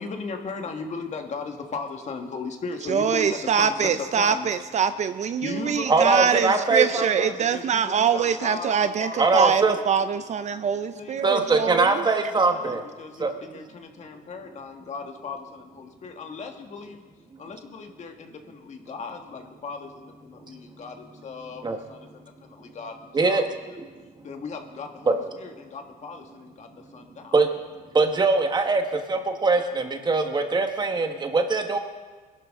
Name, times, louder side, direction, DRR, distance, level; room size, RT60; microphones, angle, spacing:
voice 1, 0.0-4.5 5.4-10.2 10.9-17.0 17.4-23.4 24.2-27.4, left 4 dB, 45° left, 4 dB, 1.7 m, -37 dB
voice 2, 2.9-12.0, right 7 dB, 45° right, 11 dB, 0.5 m, -24 dB
voice 3, 5.9-7.3 9.2-9.8 11.2-12.8 13.2-13.3 21.6-21.8 23.1-23.4 25.1-25.2 27.3-27.5 27.9-31.8, right 3 dB, 25° right, 6 dB, 1.4 m, -22 dB
21.0 x 12.0 x 3.7 m, 1.4 s
cardioid pair, 110°, 17 cm